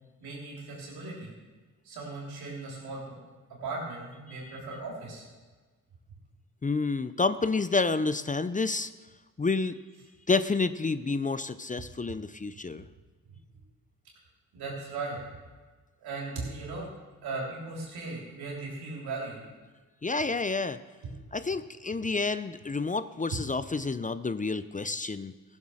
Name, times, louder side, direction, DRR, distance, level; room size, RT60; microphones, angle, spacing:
voice 1, 0.2-1.3 1.8-3.2 3.6-5.2 13.3-13.4 14.5-15.2 16.0-16.9 17.2-19.4, right 3 dB, 85° right, -2 dB, 3.5 m, -37 dB
voice 2, 6.6-8.9 9.4-9.8 10.3-12.9 20.0-20.8 21.3-25.3, left 3 dB, 20° left, 13 dB, 0.6 m, -29 dB
15.0 x 7.3 x 6.4 m, 1.4 s
supercardioid pair, 55°, 36 cm